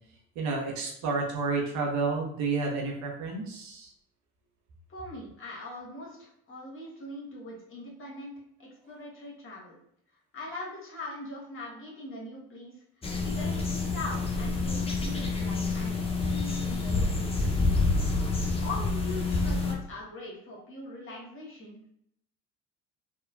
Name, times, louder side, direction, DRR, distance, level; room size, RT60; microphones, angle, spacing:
voice 1, 0.4-3.9, right 4 dB, 55° right, -1 dB, 0.8 m, -30 dB
voice 2, 4.9-9.8 10.3-12.8 13.2-17.6 18.6-21.9, left 2 dB, 35° left, -4 dB, 1.3 m, -41 dB
sound 1, 13.0-19.7, left 3 dB, 15° left, 0.6 m, -28 dB
2.9 x 2.2 x 2.4 m, 0.72 s
hypercardioid pair, 65°, 35 cm